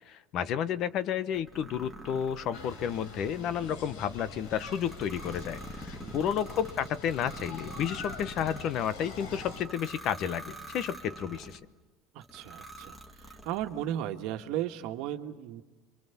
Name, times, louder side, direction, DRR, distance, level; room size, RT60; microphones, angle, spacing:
voice 1, 0.1-11.6, left 9 dB, 40° left, 15 dB, 0.9 m, -31 dB
sound 1, 1.3-11.6 12.2-13.9, right 1 dB, 5° left, 1.9 m, -46 dB
sound 2, 2.5-9.6, left 4 dB, 75° left, 4.3 m, -45 dB
voice 2, 12.1-15.6, right 11 dB, 60° right, 6 dB, 1.6 m, -36 dB
29.5 x 25.0 x 7.2 m, 1.2 s
cardioid pair, 155°, 0 cm